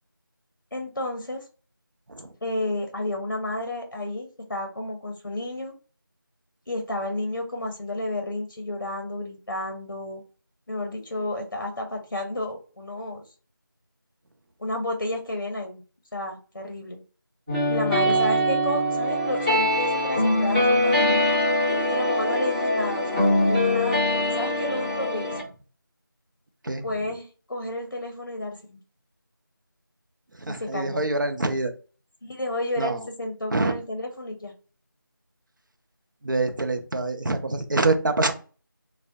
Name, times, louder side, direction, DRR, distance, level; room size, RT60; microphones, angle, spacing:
voice 1, 0.7-1.4 2.4-5.7 6.7-10.2 10.7-13.2 14.6-15.8 16.1-17.0 17.7-21.2 21.9-24.0 24.3-25.5 26.8-28.8 30.6-31.0 32.2-34.5, left 1 dB, 60° left, 3 dB, 0.6 m, -31 dB
sound 1, 17.5-25.4, left 1 dB, 20° right, 0.9 m, -23 dB
voice 2, 26.6-27.1 30.3-31.7 32.8-33.0 33.5-33.7 36.2-38.3, right 2 dB, 60° right, 5 dB, 0.5 m, -26 dB
2.3 x 2.0 x 2.6 m, 0.37 s
figure-of-eight pair, 175°, 12 cm